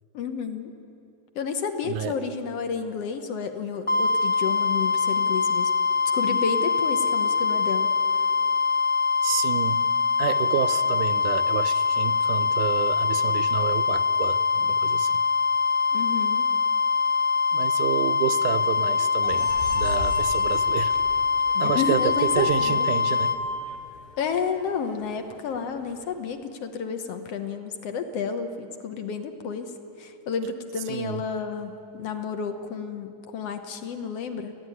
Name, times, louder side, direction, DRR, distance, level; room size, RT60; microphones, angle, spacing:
voice 1, 0.1-0.7 1.4-5.7 6.1-8.3 15.9-16.5 21.5-22.9 24.2-29.7 30.0-34.5, left 6 dB, 60° left, 7 dB, 1.9 m, -31 dB
voice 2, 1.8-2.2 9.2-9.9 10.2-15.2 17.5-21.0 21.6-23.4 30.9-31.3, right 12 dB, 80° right, 14 dB, 2.2 m, -30 dB
sound 1, 3.9-23.4, left 5 dB, 35° left, 0.4 m, -23 dB
sound 2, 19.2-26.1, left 1 dB, 80° left, 3.2 m, -41 dB
30.0 x 10.5 x 9.6 m, 2.7 s
omnidirectional pair, 3.6 m